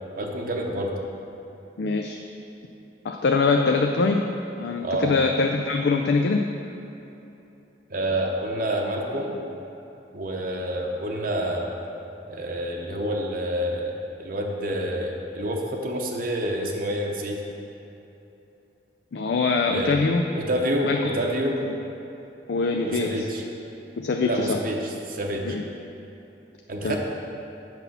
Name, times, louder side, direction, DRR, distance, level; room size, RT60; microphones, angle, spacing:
voice 1, 0.1-0.9 4.8-5.1 7.9-9.3 10.1-11.7 12.3-17.4 19.7-20.0 20.3-21.6 22.8-23.4 24.2-25.6 26.7-27.0, right 1 dB, 50° right, 0 dB, 0.8 m, -28 dB
voice 2, 1.8-2.2 3.0-4.2 4.6-6.4 19.1-20.2 20.8-21.0 21.6-21.7 22.5-23.3 24.0-24.6 25.4-25.6 26.8-27.0, left 4 dB, 70° left, 3 dB, 0.4 m, -23 dB
6.1 x 5.6 x 7.1 m, 2.9 s
head